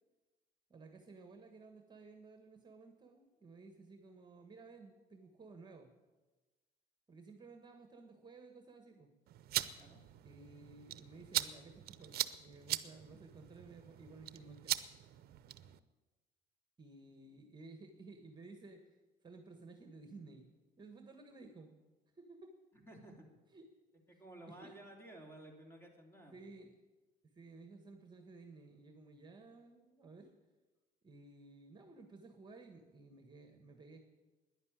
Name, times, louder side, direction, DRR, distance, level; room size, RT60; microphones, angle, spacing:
voice 1, 0.7-5.9 7.1-9.1 10.2-14.8 16.8-18.8 19.2-20.4 20.8-21.7 22.1-22.5 23.5-23.7 24.1-24.8 26.3-26.7 27.3-30.3 31.0-34.0, right 3 dB, 25° right, 6 dB, 1.5 m, -55 dB
sound 1, 9.3-15.8, right 13 dB, 65° right, 0.7 m, -41 dB
voice 2, 22.7-23.3 24.1-26.4, right 1 dB, 15° left, 2 dB, 3.1 m, -54 dB
11.0 x 10.5 x 9.0 m, 1.2 s
cardioid pair, 110°, 17 cm